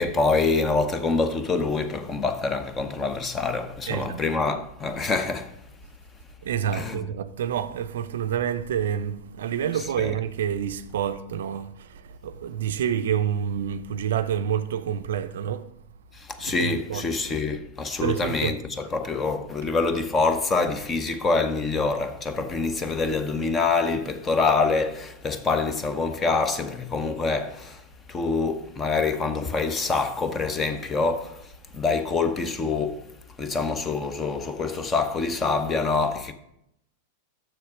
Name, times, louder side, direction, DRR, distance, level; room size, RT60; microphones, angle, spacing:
voice 1, 0.0-5.5 6.7-7.1 10.0-10.1 16.1-27.8 28.1-31.4 31.7-33.0 33.4-36.3, left 4 dB, 20° left, 0.9 m, -25 dB
voice 2, 3.9-4.3 6.4-15.7 16.5-17.1 18.0-18.6 19.6-19.7, right 9 dB, 60° right, 0.5 m, -28 dB
6.9 x 6.5 x 6.1 m
figure-of-eight pair, 90°, 0 cm